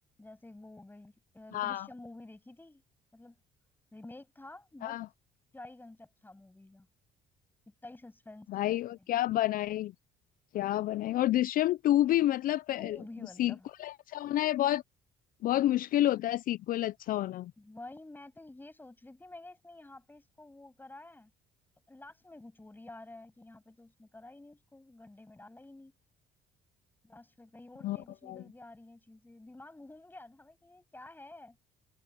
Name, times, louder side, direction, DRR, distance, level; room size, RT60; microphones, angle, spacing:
voice 1, 0.2-2.8 3.1-3.4 3.9-5.0 5.5-6.9 7.7-9.0 12.8-13.7 17.6-21.3 21.9-25.9 27.0-31.6, left 2 dB, 10° left, 6.9 m, -50 dB
voice 2, 1.5-1.9 4.8-5.1 8.5-9.9 10.5-13.0 13.4-13.5 13.8-14.8 15.4-17.5 27.8-28.0 28.3-28.4, left 14 dB, 55° left, 0.4 m, -29 dB
cardioid pair, 110°, 17 cm